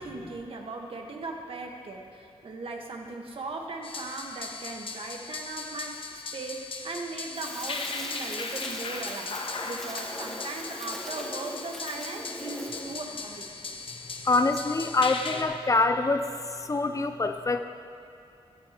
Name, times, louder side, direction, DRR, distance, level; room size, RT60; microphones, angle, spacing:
voice 1, 0.0-13.5, right 3 dB, 60° right, 2 dB, 1.4 m, -38 dB
sound 1, 3.8-15.4, left 4 dB, 55° left, 0.9 m, -38 dB
Crackle, 7.3-13.0, equal, 5° left, 2.4 m, -40 dB
voice 2, 14.3-16.2 16.7-17.6, left 3 dB, 30° left, 8 dB, 0.5 m, -25 dB
16.5 x 12.0 x 3.0 m, 2.4 s
wide cardioid pair, 105°, 11 cm